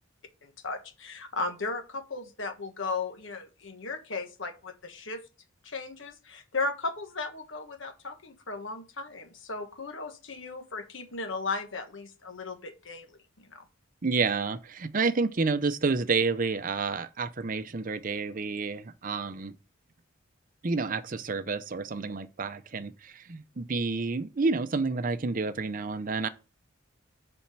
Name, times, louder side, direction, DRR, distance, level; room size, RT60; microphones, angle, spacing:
voice 1, 0.4-5.2 5.6-13.1 13.4-13.6, left 3 dB, 65° left, 1.4 m, -36 dB
voice 2, 14.0-19.5 20.6-26.3, right 4 dB, 40° right, 0.6 m, -29 dB
7.2 x 4.4 x 6.0 m
head